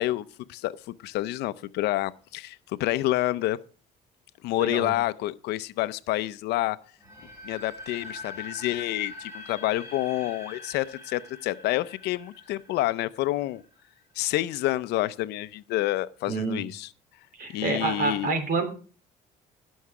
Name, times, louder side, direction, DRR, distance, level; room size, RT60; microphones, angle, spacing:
voice 1, 0.0-3.6 4.4-6.8 7.4-13.6 14.2-16.9 17.5-18.3, left 16 dB, 85° left, 0.6 m, -28 dB
voice 2, 4.6-4.9 16.3-16.6 17.4-18.7, right 4 dB, 55° right, 3.3 m, -28 dB
sound 1, 7.0-13.9, left 2 dB, 15° right, 4.3 m, -43 dB
17.0 x 6.4 x 4.8 m
cardioid pair, 110°, 17 cm